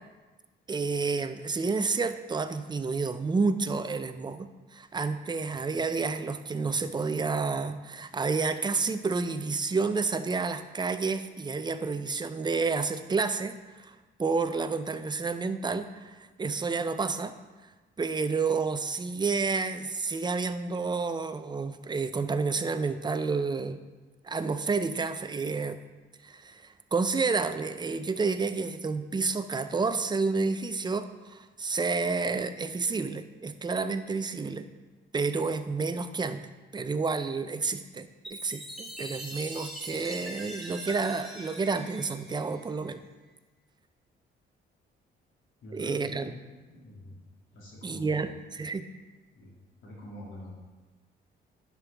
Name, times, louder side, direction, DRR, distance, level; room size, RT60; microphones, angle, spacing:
voice 1, 0.7-13.9 14.2-17.3 18.0-23.8 24.2-25.8 26.2-34.7 35.1-36.4 36.7-43.0 45.7-46.3 47.8-48.9, right 4 dB, 20° right, 10 dB, 0.5 m, -30 dB
Chime, 38.2-42.9, right 1 dB, ahead, 2.2 m, -42 dB
voice 2, 45.6-46.3 46.7-47.1 47.5-48.3 49.3-49.5 49.8-50.5, left 1 dB, 75° left, -6 dB, 2.7 m, -45 dB
10.5 x 5.4 x 3.5 m, 1.2 s
cardioid pair, 90°, 20 cm